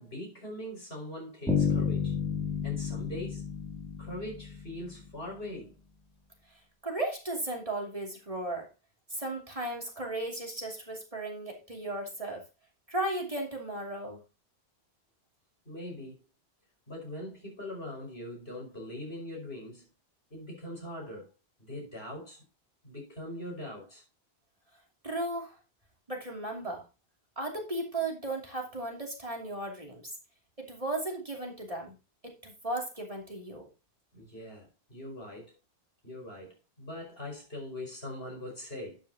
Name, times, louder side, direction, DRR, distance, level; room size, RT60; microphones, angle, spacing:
voice 1, 0.0-2.2 2.6-3.5 4.0-5.7 15.7-16.2 16.9-19.9 20.3-21.3 21.6-22.4 22.8-24.0 34.1-35.5 36.0-39.0, left 1 dB, 70° left, 5.9 m, -41 dB
Bass guitar, 1.5-5.3, left 6 dB, 5° left, 2.9 m, -31 dB
voice 2, 6.8-8.7 9.1-12.4 12.9-14.2 25.0-25.6 26.1-26.8 27.4-30.1 30.6-31.9 32.2-33.7, right 2 dB, 35° right, 2.9 m, -35 dB
12.0 x 9.1 x 2.9 m
omnidirectional pair, 1.1 m